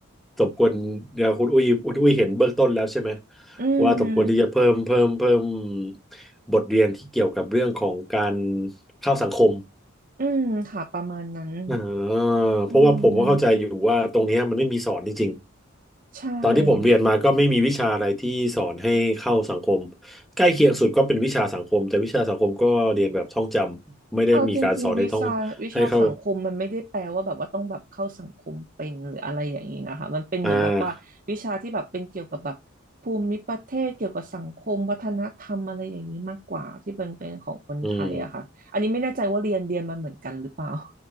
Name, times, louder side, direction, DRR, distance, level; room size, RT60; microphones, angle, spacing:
voice 1, 0.4-3.2 3.8-5.9 6.5-8.7 9.0-9.6 11.7-15.4 16.4-23.8 24.1-25.3 25.7-26.1 30.4-30.8 37.8-38.3, equal, ahead, 1.2 m, -21 dB
voice 2, 3.6-4.3 10.2-11.8 12.7-13.4 16.1-16.9 24.3-31.0 31.3-32.6 33.0-38.5 38.7-40.9, right 2 dB, 40° right, 0.8 m, -29 dB
6.1 x 3.8 x 5.2 m
head